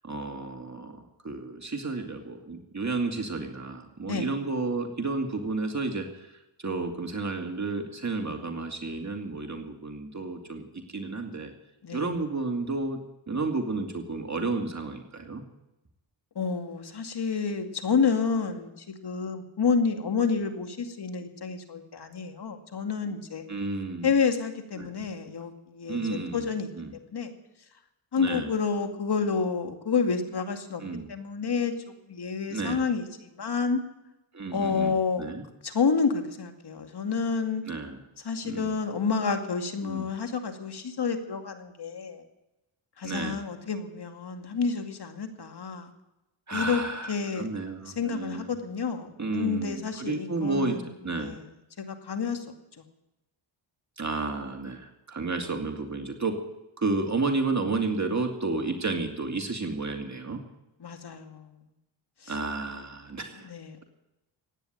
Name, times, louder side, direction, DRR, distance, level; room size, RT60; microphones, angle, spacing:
voice 1, 0.0-6.3 6.6-11.5 11.9-13.0 13.3-15.4 23.5-24.1 24.8-24.9 25.9-26.5 26.8-26.9 28.2-28.5 30.8-31.1 32.5-32.8 34.3-35.4 37.7-38.0 38.4-38.7 39.8-40.1 43.0-43.4 46.5-48.5 49.2-51.4 54.0-56.3 56.8-60.4 62.3-63.5, right 3 dB, 35° right, 4 dB, 2.4 m, -31 dB
voice 2, 16.4-18.7 19.0-23.4 24.0-26.7 27.1-27.3 28.1-30.8 31.1-31.7 32.1-33.8 34.5-35.3 35.6-37.6 38.2-42.2 43.0-45.9 46.5-46.8 47.1-47.5 48.0-50.9 51.2-51.4 51.8-52.4 60.8-61.5 62.2-62.3 63.4-63.8, left 5 dB, 50° left, 6 dB, 2.4 m, -29 dB
16.0 x 9.9 x 9.0 m, 0.95 s
cardioid pair, 65°, 49 cm